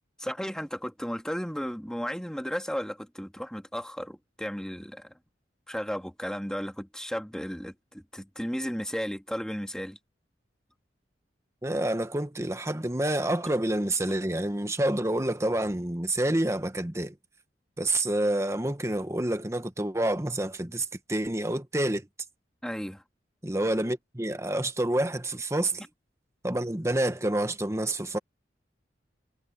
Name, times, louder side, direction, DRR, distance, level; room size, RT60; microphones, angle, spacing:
voice 1, 0.2-5.1 5.7-10.0 22.6-23.0, equal, 5° left, 1.7 m, -34 dB
voice 2, 11.6-17.2 17.8-22.1 23.4-25.8 26.4-28.2, right 1 dB, 15° right, 1.1 m, -28 dB
head